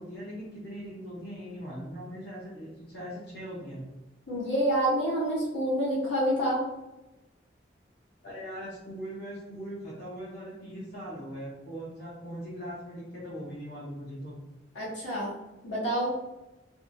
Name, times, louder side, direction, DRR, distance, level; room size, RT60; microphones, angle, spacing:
voice 1, 0.0-3.8 8.2-14.3, equal, 60° left, -9 dB, 0.9 m, -40 dB
voice 2, 4.3-6.6 14.7-15.3 15.6-16.1, equal, 80° left, -7 dB, 1.2 m, -27 dB
2.8 x 2.3 x 2.6 m, 1.0 s
head